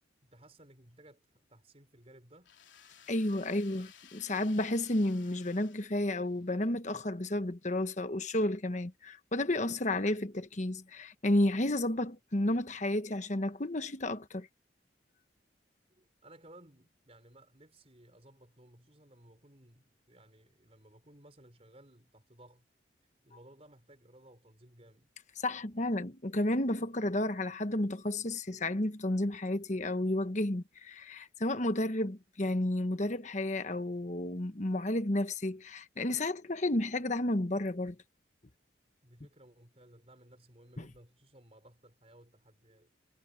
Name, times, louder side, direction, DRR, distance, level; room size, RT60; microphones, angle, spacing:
voice 1, 0.2-2.5 15.9-22.7 23.2-25.1 39.0-42.9, right 1 dB, 35° right, 5.5 m, -58 dB
sound 1, 2.4-6.5, left 9 dB, 85° left, 3.3 m, -57 dB
voice 2, 3.1-14.5 25.4-37.9 40.8-40.9, left 1 dB, 40° left, 1.2 m, -32 dB
head